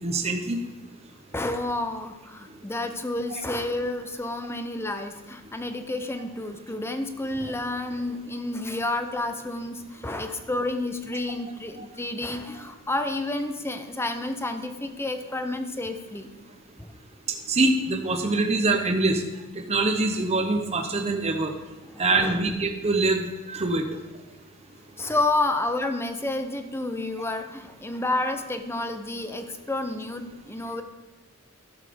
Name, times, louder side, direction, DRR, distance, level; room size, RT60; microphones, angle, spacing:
voice 1, 0.0-0.6 11.8-11.9 17.5-19.2 19.5-21.5 22.0-23.9, right 2 dB, 30° right, 4 dB, 0.8 m, -24 dB
voice 2, 1.3-16.3 16.8-16.9 21.9-22.4 25.0-30.8, left 2 dB, 10° left, 7 dB, 0.7 m, -30 dB
12.0 x 7.2 x 5.2 m, 1.1 s
head